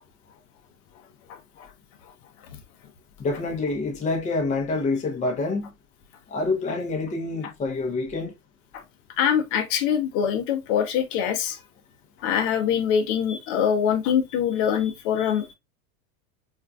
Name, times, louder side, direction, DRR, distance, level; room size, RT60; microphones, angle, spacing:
voice 1, 1.3-1.7 8.7-8.8 9.2-11.6 12.2-15.5, left 8 dB, 55° left, 0.8 m, -24 dB
voice 2, 3.2-5.7 6.3-8.3, left 3 dB, 15° left, 0.7 m, -27 dB
4.4 x 2.5 x 2.3 m
supercardioid pair, 120°, 45 cm